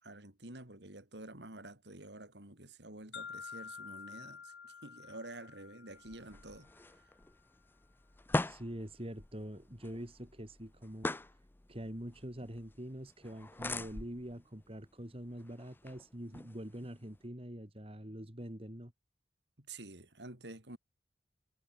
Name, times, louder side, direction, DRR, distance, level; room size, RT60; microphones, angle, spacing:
voice 1, 0.0-7.0 19.6-20.8, right 2 dB, 75° right, 4.4 m, -49 dB
sound 1, 3.1-7.1, left 6 dB, 85° left, 1.2 m, -49 dB
sound 2, 5.9-17.3, left 2 dB, 10° left, 0.5 m, -43 dB
voice 2, 8.4-11.1 11.7-18.9, equal, 35° right, 2.8 m, -45 dB
head